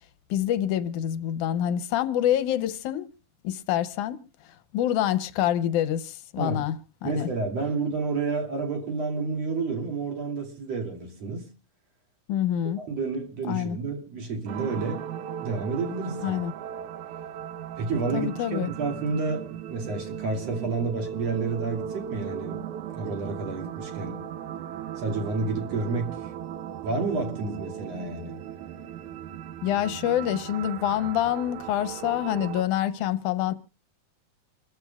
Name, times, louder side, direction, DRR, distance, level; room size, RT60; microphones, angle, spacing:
voice 1, 0.3-3.1 3.4-4.2 4.7-6.8 7.0-7.3 12.3-12.8 13.5-13.8 16.2-16.5 18.1-18.7 29.6-33.5, left 11 dB, 85° left, 2.3 m, -26 dB
voice 2, 7.0-11.5 12.8-15.0 15.4-16.4 17.8-24.3 25.0-26.3 26.8-28.4, right 4 dB, 55° right, 3.8 m, -30 dB
sound 1, 14.5-32.6, right 10 dB, 80° right, 2.3 m, -37 dB
27.5 x 14.5 x 2.3 m
omnidirectional pair, 3.4 m